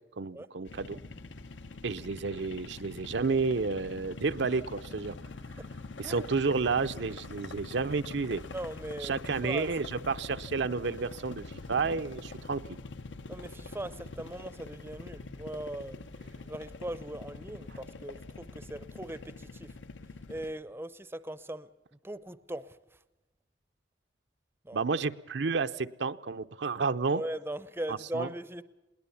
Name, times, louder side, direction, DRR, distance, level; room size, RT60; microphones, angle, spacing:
voice 1, 0.2-1.0 1.8-5.2 6.0-8.4 9.0-12.8 24.7-27.2 27.9-28.3, right 4 dB, 65° right, 10 dB, 0.6 m, -31 dB
sound 1, 0.6-20.5, left 3 dB, 75° left, 1.0 m, -45 dB
voice 2, 8.5-9.8 13.3-19.7 20.3-23.0 24.6-24.8 27.1-28.6, right 1 dB, 10° right, 15 dB, 0.6 m, -40 dB
21.5 x 18.5 x 7.1 m, 1.0 s
head